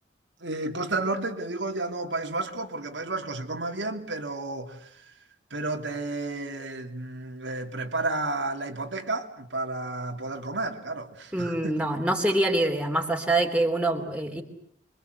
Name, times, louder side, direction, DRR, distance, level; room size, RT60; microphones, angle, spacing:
voice 1, 0.4-4.9 5.5-11.7, right 2 dB, 75° right, 2.9 m, -32 dB
voice 2, 11.3-14.4, right 1 dB, 5° right, 3.2 m, -25 dB
27.0 x 24.0 x 8.1 m
head